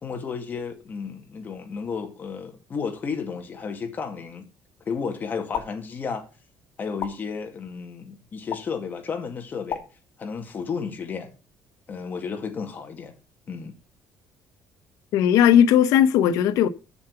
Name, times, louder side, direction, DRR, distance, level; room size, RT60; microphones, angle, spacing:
voice 1, 0.0-4.5 4.9-6.2 6.8-9.8 10.2-11.3 11.9-13.1 13.5-13.8, left 5 dB, 30° left, 2.1 m, -32 dB
sound 1, 5.5-5.7 7.0-7.1 8.5-8.6 9.7-9.8, left 9 dB, 70° left, 1.6 m, -30 dB
voice 2, 15.1-16.7, left 9 dB, 85° left, 0.9 m, -17 dB
7.3 x 7.0 x 7.0 m
cardioid pair, 145°, 6 cm